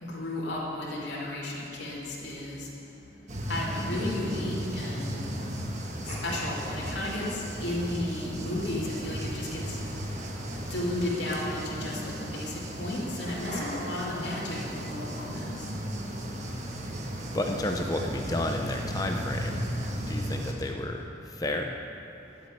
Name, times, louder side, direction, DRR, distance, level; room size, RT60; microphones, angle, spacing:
voice 1, 0.0-2.7 3.5-5.3 6.1-9.8 10.6-15.5, left 1 dB, 75° left, -5 dB, 2.6 m, -33 dB
sound 1, 3.3-20.5, equal, 40° right, 1.4 m, -35 dB
sound 2, 6.1-7.6 8.4-9.0 9.7-10.4 11.2-12.4 13.3-14.1, right 1 dB, 70° right, 3.3 m, -43 dB
voice 2, 17.3-19.6 20.1-21.8, left 1 dB, 20° left, 3 dB, 0.7 m, -31 dB
12.5 x 7.5 x 9.4 m, 2.7 s
head